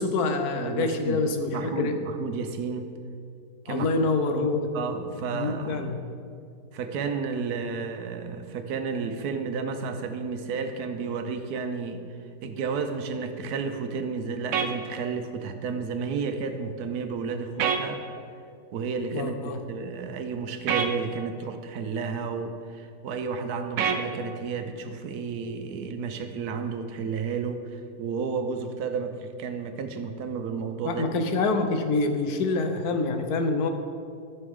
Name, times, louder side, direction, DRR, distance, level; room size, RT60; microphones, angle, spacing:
voice 1, 0.0-2.0 3.7-4.7 5.3-6.0 19.1-19.6 30.8-33.7, left 3 dB, 85° left, 6 dB, 1.3 m, -26 dB
voice 2, 0.5-1.2 1.5-2.9 3.6-3.9 4.3-5.9 6.7-12.0 12.4-18.0 18.7-31.1, right 5 dB, 85° right, 7 dB, 1.2 m, -32 dB
sound 1, 14.5-14.7 17.6-17.8 20.7-20.9 23.8-24.0, right 7 dB, 65° right, 0.9 m, -24 dB
13.0 x 6.1 x 3.7 m, 2.4 s
omnidirectional pair, 1.6 m